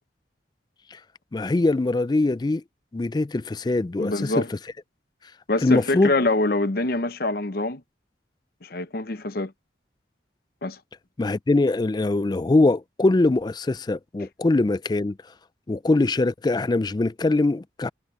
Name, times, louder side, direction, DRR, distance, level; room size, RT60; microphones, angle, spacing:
voice 1, 1.3-2.6 2.9-4.4 5.6-6.1 11.2-15.2 15.7-17.9, left 2 dB, 20° left, 0.3 m, -22 dB
voice 2, 4.0-4.5 5.5-7.8 8.6-9.5 10.6-10.8, left 2 dB, 50° left, 0.8 m, -25 dB
head